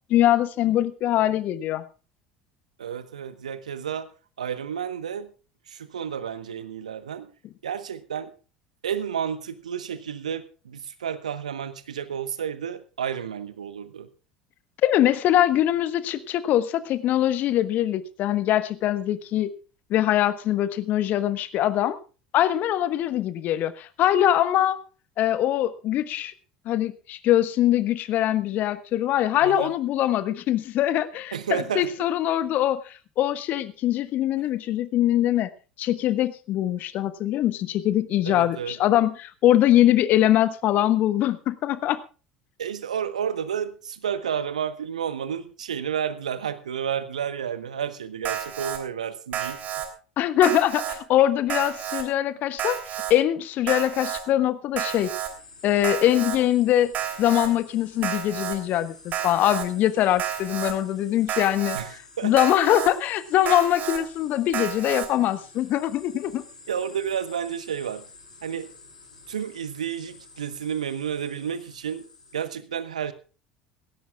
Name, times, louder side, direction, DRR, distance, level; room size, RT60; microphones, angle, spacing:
voice 1, 0.1-1.8 14.8-19.5 19.9-22.0 22.3-24.8 25.2-26.3 26.6-35.5 35.8-42.0 50.2-52.8 53.1-55.1 55.6-56.9 57.2-61.8 62.2-66.4, left 12 dB, 50° left, 14 dB, 1.2 m, -22 dB
voice 2, 2.8-4.1 4.4-5.3 5.7-7.3 7.6-8.3 8.8-14.1 29.4-29.7 31.3-32.1 38.2-38.8 42.6-49.6 61.7-62.4 66.7-68.0 68.4-68.7 69.3-72.0 72.3-73.1, right 8 dB, 80° right, 13 dB, 1.2 m, -31 dB
Alarm, 48.2-48.8 49.3-49.9 50.4-51.0 51.5-52.0 52.6-53.1 53.7-54.2 54.8-55.3 55.8-56.4 56.9-57.5 58.0-58.6 59.1-59.7 60.2-60.7 61.3-61.8 62.4-62.9 63.5-64.0 64.5-65.1, right 10 dB, 45° right, 3.2 m, -30 dB
sound 1, 54.9-72.5, left 4 dB, 85° left, 3.0 m, -50 dB
18.5 x 16.5 x 2.4 m, 0.34 s
figure-of-eight pair, 65°, 4 cm